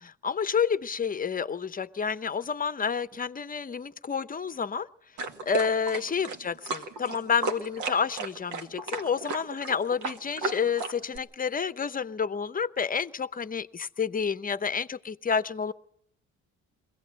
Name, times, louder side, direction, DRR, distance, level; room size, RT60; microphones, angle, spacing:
voice 1, 0.0-4.9 5.4-15.7, left 6 dB, 30° left, 15 dB, 0.8 m, -29 dB
sound 1, 5.2-11.2, right 3 dB, 80° right, 2.0 m, -34 dB
22.0 x 17.0 x 7.6 m, 0.73 s
cardioid pair, 90°, 30 cm